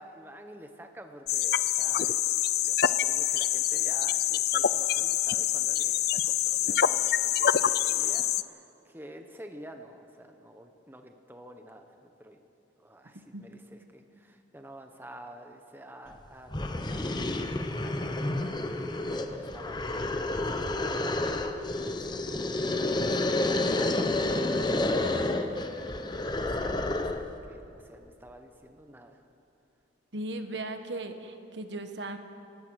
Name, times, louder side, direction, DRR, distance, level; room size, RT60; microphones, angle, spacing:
voice 1, 0.0-2.3 2.6-12.4 12.8-17.4 17.8-20.3 20.6-29.2 30.3-30.4, right 1 dB, 10° right, 5 dB, 1.0 m, -50 dB
sound 1, 1.3-8.4, left 11 dB, 55° left, 0.5 m, -26 dB
sound 2, 16.1-16.2 16.5-27.3, left 2 dB, 25° left, 0.9 m, -30 dB
voice 2, 30.1-32.2, right 2 dB, 65° right, 7 dB, 1.4 m, -37 dB
28.5 x 16.5 x 6.4 m, 2.8 s
head